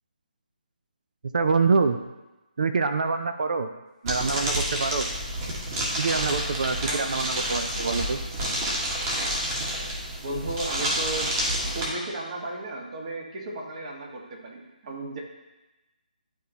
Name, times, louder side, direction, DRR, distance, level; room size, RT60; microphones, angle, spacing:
voice 1, 1.3-2.0 2.6-3.7 4.0-5.1 6.0-8.2, right 4 dB, 60° right, 8 dB, 0.5 m, -25 dB
sound 1, 4.1-11.9, right 1 dB, 25° right, 1.5 m, -29 dB
voice 2, 10.2-11.3 11.6-15.2, right 2 dB, 45° right, -1 dB, 1.6 m, -35 dB
11.5 x 4.2 x 2.9 m, 1.1 s
figure-of-eight pair, 155°, 5 cm